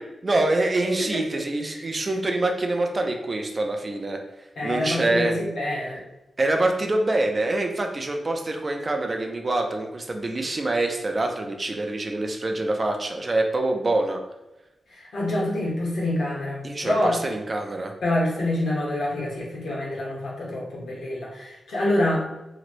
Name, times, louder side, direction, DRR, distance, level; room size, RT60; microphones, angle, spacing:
voice 1, 0.2-4.2 4.6-5.4 6.4-14.2 16.6-17.9, right 2 dB, 30° right, 3 dB, 0.4 m, -25 dB
voice 2, 4.6-6.0 14.9-17.1 18.0-22.3, left 1 dB, 90° left, -4 dB, 1.1 m, -26 dB
3.0 x 3.0 x 2.5 m, 0.98 s
wide cardioid pair, 165°, 0 cm